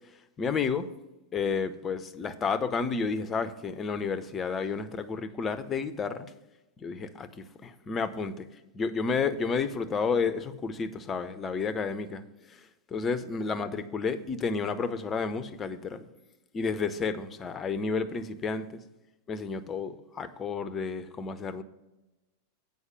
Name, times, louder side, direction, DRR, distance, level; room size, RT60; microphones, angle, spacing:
voice 1, 0.4-0.9 1.3-6.3 6.8-8.5 8.7-12.2 12.5-16.1 16.5-18.8 19.3-21.6, left 5 dB, 20° left, 12 dB, 0.6 m, -31 dB
8.1 x 5.3 x 7.5 m, 1.0 s
figure-of-eight pair, 90°, 0 cm